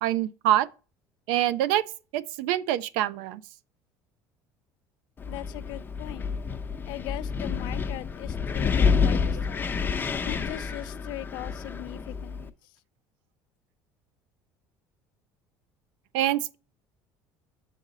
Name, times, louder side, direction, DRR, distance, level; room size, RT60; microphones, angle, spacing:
voice 1, 0.0-0.7 1.3-1.8 2.1-3.4 16.1-16.6, right 13 dB, 80° right, 0.4 m, -25 dB
Wind, 5.2-12.5, left 5 dB, 25° left, 0.7 m, -28 dB
voice 2, 5.3-6.3 6.8-9.8 10.2-12.5, left 16 dB, 70° left, 0.4 m, -40 dB
7.0 x 4.1 x 4.0 m
supercardioid pair, 105°, 8 cm